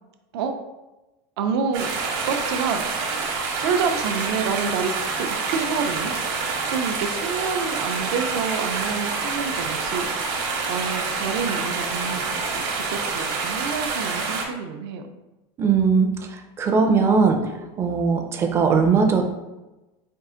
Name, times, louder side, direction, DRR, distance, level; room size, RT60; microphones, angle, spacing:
voice 1, 1.4-1.9 2.2-2.8 3.6-4.9 5.2-6.1 6.7-10.1 10.7-15.0, right 6 dB, 70° right, 6 dB, 0.5 m, -28 dB
sound 1, 1.7-14.5, right 4 dB, 50° right, 0.9 m, -27 dB
voice 2, 15.6-17.4 17.8-19.2, right 5 dB, 20° right, 4 dB, 0.4 m, -19 dB
4.5 x 2.4 x 3.7 m, 1.0 s
supercardioid pair, 165°, 13 cm